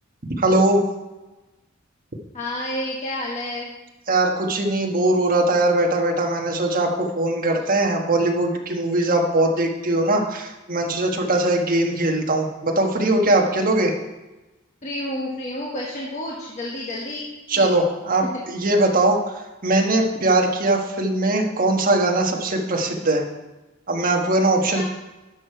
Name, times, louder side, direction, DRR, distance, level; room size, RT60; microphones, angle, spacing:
voice 1, 0.4-0.8 4.1-13.9 17.5-23.2 23.9-24.8, right 2 dB, 45° right, 2 dB, 1.3 m, -21 dB
voice 2, 2.3-3.7 7.6-7.7 14.8-17.2 17.5-17.8 22.8-23.0 24.7-24.8, left 1 dB, 35° left, -3 dB, 1.3 m, -30 dB
11.5 x 6.4 x 4.6 m, 1.1 s
head